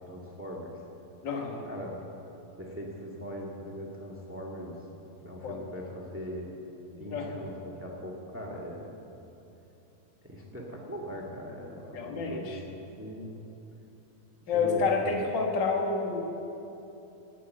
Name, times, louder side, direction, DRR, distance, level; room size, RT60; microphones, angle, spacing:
voice 1, 0.0-0.8 1.6-2.0 2.6-4.8 5.2-6.5 6.9-8.9 10.2-13.3 14.4-15.2, equal, 15° right, -2 dB, 0.4 m, -40 dB
voice 2, 1.2-1.6 5.4-5.6 7.1-7.4 11.9-12.6 14.5-16.2, left 4 dB, 45° left, 1 dB, 1.6 m, -29 dB
18.5 x 8.5 x 7.8 m, 2.9 s
omnidirectional pair, 4.1 m